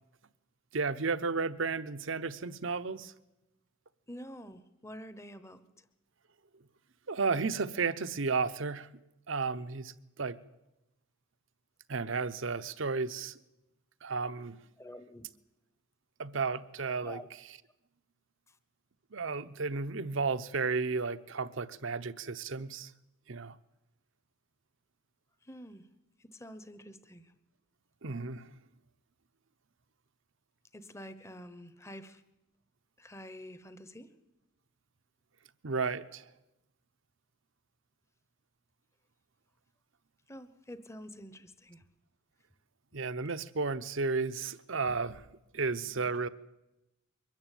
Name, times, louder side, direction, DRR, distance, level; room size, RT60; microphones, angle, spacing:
voice 1, 0.7-3.1 7.1-8.9 9.3-9.9 10.2-10.4 11.9-13.3 14.0-14.6 16.2-17.2 19.1-22.9 23.3-23.5 28.0-28.5 35.6-36.2 42.9-45.2 45.5-46.3, right 4 dB, 65° right, 12 dB, 0.8 m, -33 dB
voice 2, 4.1-5.6 14.8-15.3 17.0-17.3 25.4-25.8 26.2-27.3 30.7-32.2 33.0-34.1 40.3-41.8 42.9-43.0, equal, 15° left, 13 dB, 1.0 m, -48 dB
23.0 x 13.5 x 9.2 m, 0.95 s
head